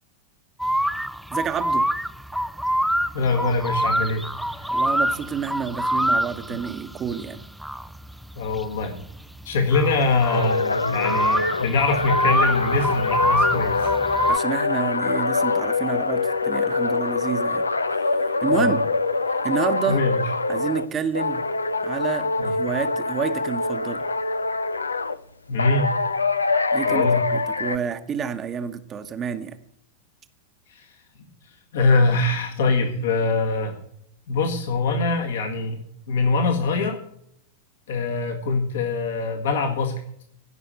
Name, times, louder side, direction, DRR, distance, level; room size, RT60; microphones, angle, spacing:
sound 1, 0.6-14.4, equal, ahead, 0.5 m, -26 dB
voice 1, 1.3-1.9 4.7-7.4 14.3-17.6 18.1-18.8 19.4-20.0 20.5-21.5 21.8-24.0 26.7-29.6, right 7 dB, 25° right, 9 dB, 1.1 m, -29 dB
voice 2, 3.1-4.2 4.6-4.7 8.4-9.0 9.5-13.9 18.5-18.8 19.9-20.2 22.4-22.5 25.5-25.9 26.8-27.2 30.7-30.9 31.7-33.8 34.3-35.8 36.1-37.0 37.9-40.0, left 3 dB, 60° left, 3 dB, 1.8 m, -23 dB
sound 2, 10.3-20.9 21.1-25.2 25.6-27.8, left 3 dB, 80° left, 0.6 m, -24 dB
17.0 x 6.1 x 7.9 m, 0.68 s
figure-of-eight pair, 90°, 0 cm